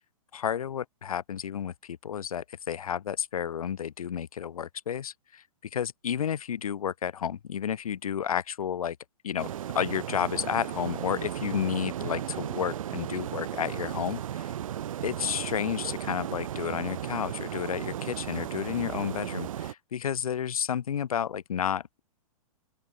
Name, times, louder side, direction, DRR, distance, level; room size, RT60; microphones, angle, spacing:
voice 1, 0.3-5.4 5.7-9.0 9.2-14.5 15.0-22.0, left 9 dB, 75° left, 4.2 m, -31 dB
sound 1, 9.4-19.7, right 11 dB, 65° right, 2.5 m, -35 dB
open air
hypercardioid pair, 130°, 19 cm